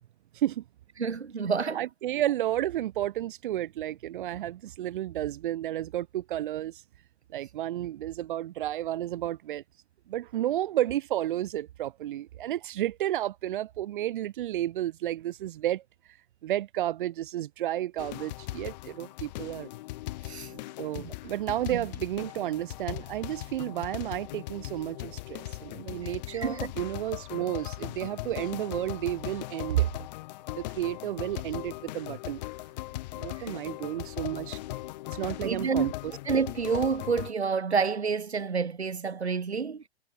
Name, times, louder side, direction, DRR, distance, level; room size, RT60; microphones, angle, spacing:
voice 1, 0.3-0.6 1.7-6.8 7.3-9.6 10.1-15.8 16.4-19.7 20.8-29.9 30.5-32.4 33.1-34.8 35.1-36.2, right 13 dB, 50° right, 2.1 m, -32 dB
voice 2, 1.0-1.8 20.2-20.6 20.9-21.1 21.7-21.9 26.3-26.7 33.4-33.5 35.4-35.9 36.2-39.8, right 5 dB, 80° right, 1.2 m, -29 dB
sound 1, 18.0-37.3, left 18 dB, 40° left, 1.5 m, -39 dB
figure-of-eight pair, 110°, 32 cm